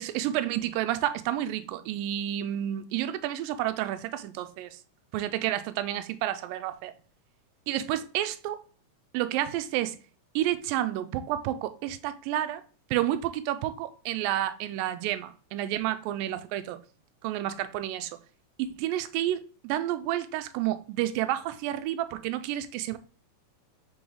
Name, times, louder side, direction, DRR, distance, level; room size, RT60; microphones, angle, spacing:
voice 1, 0.0-4.8 5.1-6.9 7.7-8.6 9.1-10.0 10.4-12.6 12.9-16.8 17.2-18.1 18.6-23.0, right 13 dB, 90° right, 2.3 m, -30 dB
5.3 x 3.9 x 4.7 m
omnidirectional pair, 3.9 m